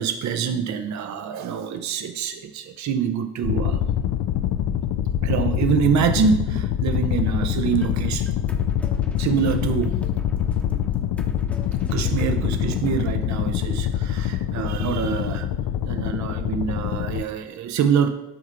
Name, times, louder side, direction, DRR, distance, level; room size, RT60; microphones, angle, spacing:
voice 1, 0.0-3.8 5.2-8.3 9.2-10.0 11.9-15.5 15.9-18.1, right 7 dB, 45° right, 8 dB, 0.6 m, -25 dB
sound 1, 3.4-17.2, left 10 dB, 50° left, 0.5 m, -25 dB
sound 2, 7.7-13.2, equal, 5° left, 1.0 m, -43 dB
6.6 x 3.6 x 5.7 m, 0.96 s
hypercardioid pair, 40°, 41 cm